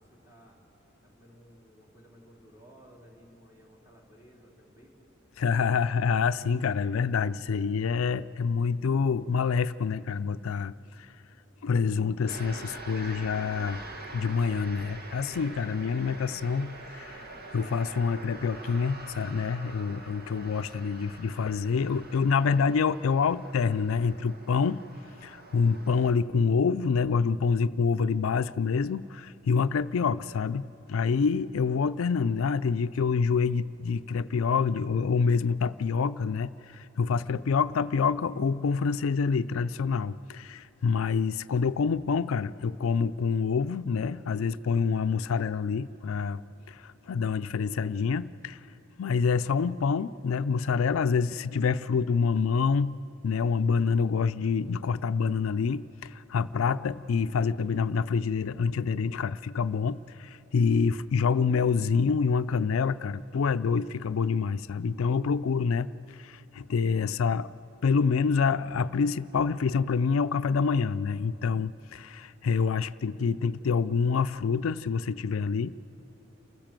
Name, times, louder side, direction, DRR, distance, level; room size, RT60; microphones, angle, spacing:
voice 1, 0.0-5.1, equal, 15° right, -3 dB, 3.5 m, -56 dB
voice 2, 5.4-10.7 11.6-13.8 14.1-17.2 17.5-24.8 25.2-46.4 46.7-48.6 49.0-53.0 53.2-67.5 67.8-75.8, left 5 dB, 80° left, 13 dB, 0.4 m, -27 dB
sound 1, 12.3-26.1, right 2 dB, 50° right, 1.7 m, -45 dB
28.0 x 15.5 x 7.5 m, 2.8 s
head